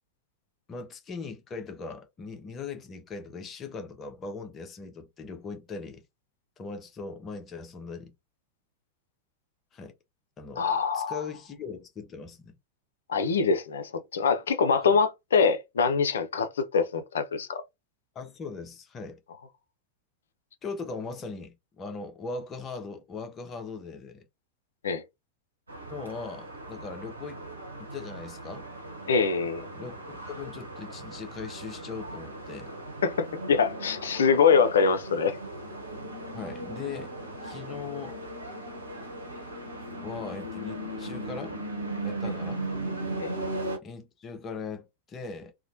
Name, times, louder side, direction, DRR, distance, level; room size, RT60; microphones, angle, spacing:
voice 1, 0.7-6.0 6.6-8.1 9.7-9.9 10.4-12.5 18.1-19.2 20.6-24.2 25.9-27.4 27.8-28.7 29.7-32.7 36.3-37.1 37.4-38.2 40.0-41.6 42.0-42.6 43.8-45.5, left 4 dB, 25° left, 0.7 m, -39 dB
voice 2, 10.6-11.2 13.1-17.6 24.8-25.0 29.1-29.7 33.0-35.4 43.2-43.3, left 5 dB, 65° left, 0.5 m, -24 dB
sound 1, 25.7-43.8, right 1 dB, 80° right, 0.9 m, -38 dB
2.9 x 2.1 x 2.6 m
figure-of-eight pair, 90°, 0 cm